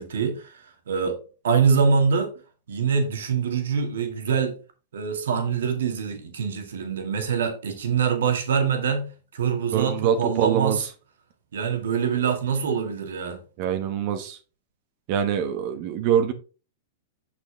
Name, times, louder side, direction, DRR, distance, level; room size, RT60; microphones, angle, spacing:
voice 1, 0.0-2.3 2.7-4.6 4.9-10.9 11.5-13.4, right 6 dB, 75° right, 2.0 m, -24 dB
voice 2, 9.7-10.9 13.6-14.4 15.1-16.3, right 9 dB, 50° right, 1.0 m, -24 dB
6.4 x 6.1 x 3.8 m
hypercardioid pair, 110°, 0 cm